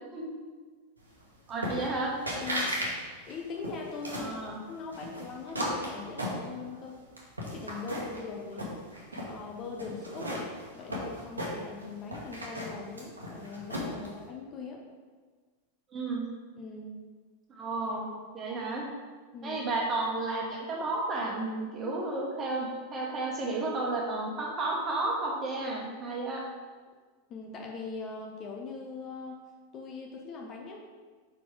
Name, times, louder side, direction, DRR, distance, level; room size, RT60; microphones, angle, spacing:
voice 1, 1.5-2.2 4.1-4.6 14.0-14.1 15.9-16.2 17.5-18.9 19.4-26.4, right 2 dB, 25° right, -2 dB, 1.4 m, -32 dB
sound 1, 1.6-2.0 2.3-2.9 3.2-4.3 4.9-6.8 7.2-8.2 8.5-9.3 9.8-11.8 12.1-14.1, equal, 80° right, 1.3 m, -35 dB
voice 2, 2.4-2.7 3.3-7.0 7.4-8.7 9.2-14.8 16.6-17.0 19.3-19.6 27.3-29.4 29.7-30.9, left 4 dB, 30° left, 1 dB, 0.8 m, -41 dB
5.2 x 4.7 x 4.9 m, 1.4 s
figure-of-eight pair, 90°, 0 cm